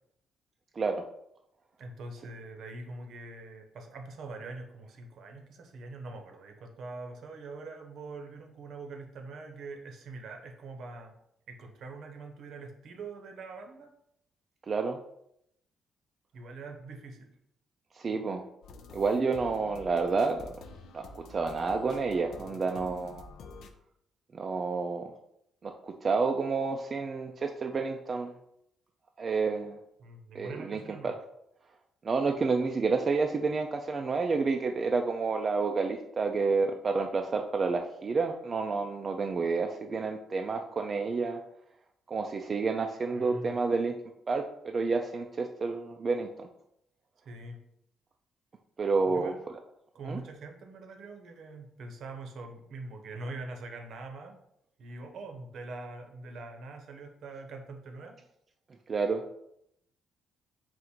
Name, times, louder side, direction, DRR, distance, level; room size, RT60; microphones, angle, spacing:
voice 1, 1.8-11.2 11.5-13.9 16.3-17.4 18.1-18.2 30.0-31.2 43.1-43.5 47.2-47.6 49.1-49.4 49.9-54.4 54.8-58.2, right 3 dB, 70° right, 3 dB, 0.8 m, -43 dB
voice 2, 14.7-15.0 17.9-18.4 18.9-20.6 20.9-23.2 24.3-25.1 25.6-28.3 29.2-29.8 30.3-31.1 32.0-41.4 42.1-43.9 44.3-46.5 48.8-49.3 50.0-50.2 58.9-59.3, right 4 dB, 40° right, 3 dB, 0.3 m, -29 dB
sound 1, 18.6-23.7, left 4 dB, 75° left, 0.4 m, -48 dB
3.7 x 2.5 x 4.3 m, 0.77 s
cardioid pair, 90°, 0 cm